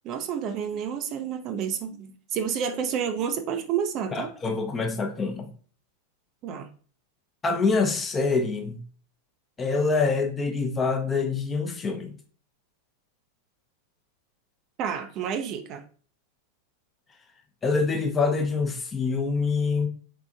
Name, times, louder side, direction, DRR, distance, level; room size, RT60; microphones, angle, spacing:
voice 1, 0.0-4.3 6.4-6.7 14.8-15.8, right 7 dB, 35° right, 0.4 m, -30 dB
voice 2, 4.1-5.5 7.4-8.8 9.6-12.1 17.6-19.9, left 4 dB, 20° left, 0.7 m, -25 dB
4.3 x 3.5 x 2.4 m
figure-of-eight pair, 90°, 0 cm